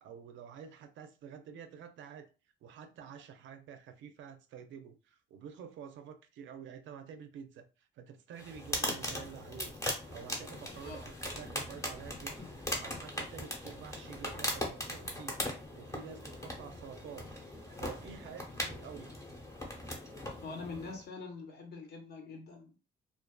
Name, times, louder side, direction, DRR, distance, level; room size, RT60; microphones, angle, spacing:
voice 1, 0.0-2.3 2.6-9.7 10.1-12.4 12.6-17.3 17.8-19.1, right 7 dB, 75° right, 0.4 m, -49 dB
sound 1, 8.4-21.0, left 1 dB, 15° left, 0.8 m, -39 dB
voice 2, 20.4-22.8, left 4 dB, 55° left, 0.9 m, -44 dB
2.4 x 2.3 x 2.2 m
cardioid pair, 90°, 20 cm